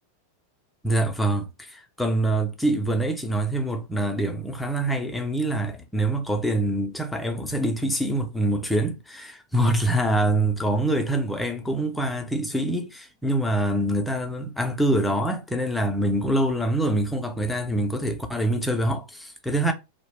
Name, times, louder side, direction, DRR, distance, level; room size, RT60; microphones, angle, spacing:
voice 1, 0.8-19.7, right 1 dB, 5° left, 0.5 m, -25 dB
2.3 x 2.1 x 3.2 m
figure-of-eight pair, 90°, 0 cm